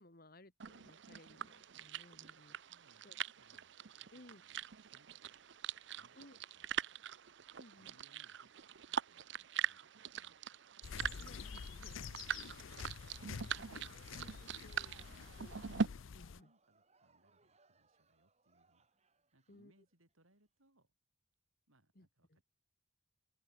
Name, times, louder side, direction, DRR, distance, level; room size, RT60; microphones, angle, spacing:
voice 1, 0.0-2.6 3.0-3.2 4.1-4.4 6.1-6.4 7.6-8.0 11.0-12.0 13.9-15.1 15.4-16.5 19.5-19.7 22.0-22.4, left 1 dB, 45° left, 2.3 m, -61 dB
sound 1, 0.6-15.9, right 7 dB, 60° right, 0.6 m, -43 dB
voice 2, 2.7-6.9 7.7-10.4 11.9-15.4 16.3-19.0 19.3-20.9 21.7-22.4, right 1 dB, 90° right, 7.3 m, -73 dB
sound 2, 10.8-16.4, left 6 dB, 75° left, 0.5 m, -48 dB
Crowd, 14.5-20.3, right 4 dB, 30° right, 4.2 m, -71 dB
open air
head